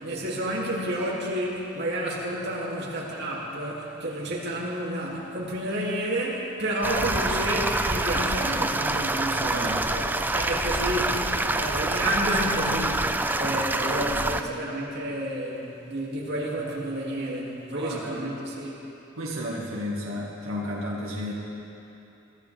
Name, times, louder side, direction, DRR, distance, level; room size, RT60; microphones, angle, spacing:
voice 1, 0.0-9.4 9.9-10.0 10.3-13.1 13.4-18.7, right 1 dB, 55° right, -5 dB, 2.7 m, -30 dB
sound 1, 6.8-14.4, right 2 dB, 10° right, 0.4 m, -26 dB
voice 2, 9.2-9.9 13.7-14.5 17.7-18.3 19.2-21.3, equal, 85° right, -4 dB, 1.9 m, -33 dB
23.0 x 14.5 x 3.5 m, 3.0 s
head